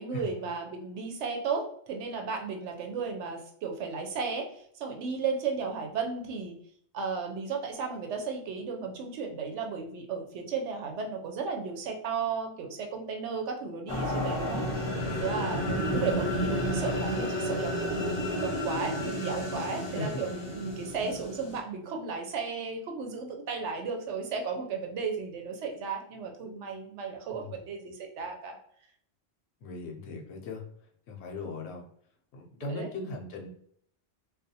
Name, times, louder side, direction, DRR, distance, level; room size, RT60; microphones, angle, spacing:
voice 1, 0.0-6.6 6.9-14.9 15.2-28.6 32.7-32.9, right 5 dB, 85° right, 3 dB, 0.9 m, -34 dB
sound 1, 13.9-21.6, equal, 45° left, 0.4 m, -31 dB
voice 2, 15.1-15.4 20.0-20.2 27.3-27.6 29.6-30.6 31.1-31.9 32.3-33.5, left 2 dB, 75° left, 1 dB, 0.9 m, -38 dB
2.4 x 2.2 x 2.7 m, 0.65 s
omnidirectional pair, 1.1 m